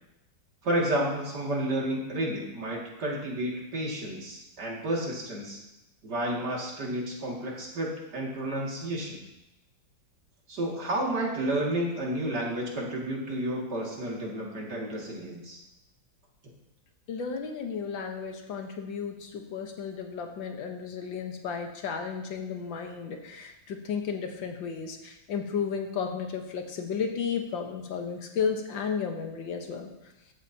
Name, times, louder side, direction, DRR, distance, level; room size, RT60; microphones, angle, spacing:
voice 1, 0.6-5.6 6.0-9.2 10.5-15.6, right 1 dB, 60° right, -3 dB, 2.9 m, -31 dB
voice 2, 17.1-29.9, left 6 dB, 85° left, 4 dB, 1.9 m, -33 dB
14.5 x 11.0 x 2.9 m, 0.94 s
omnidirectional pair, 2.0 m